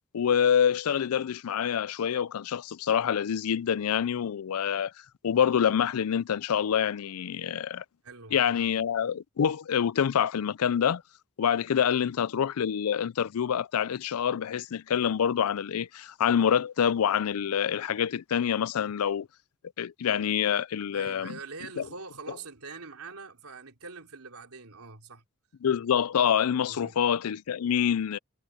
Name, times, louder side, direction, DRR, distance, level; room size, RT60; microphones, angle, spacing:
voice 1, 0.1-4.9 5.2-7.8 8.3-11.0 11.4-19.3 19.8-21.4 21.8-21.9 25.6-28.2, left 8 dB, 85° left, 0.4 m, -26 dB
voice 2, 8.0-8.7 20.9-25.2 26.7-27.0, right 4 dB, 85° right, 3.5 m, -44 dB
head